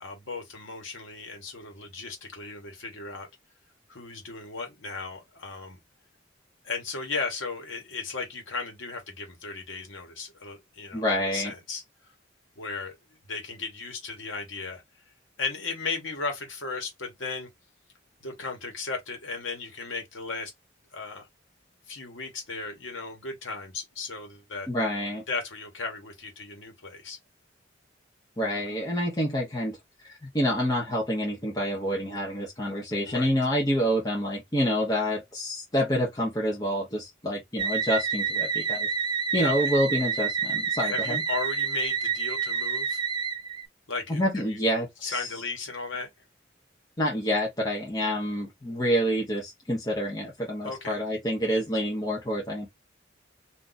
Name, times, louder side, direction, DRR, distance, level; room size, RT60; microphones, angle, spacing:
voice 1, 0.0-3.3 3.9-5.8 6.6-11.8 12.6-13.0 13.3-14.8 15.4-17.5 18.2-20.5 20.9-21.3 21.9-24.7 25.3-27.2 33.0-33.3 39.4-39.6 40.8-43.0 43.9-44.6 45.0-46.1 50.6-51.0, left 4 dB, 85° left, 1.2 m, -36 dB
voice 2, 10.9-11.5 24.7-25.2 28.4-29.8 30.3-38.9 39.3-41.2 44.1-45.3 47.0-52.7, equal, 20° left, 0.7 m, -27 dB
scifi sweep b, 37.6-43.6, right 6 dB, 25° right, 0.3 m, -28 dB
2.5 x 2.4 x 3.9 m
head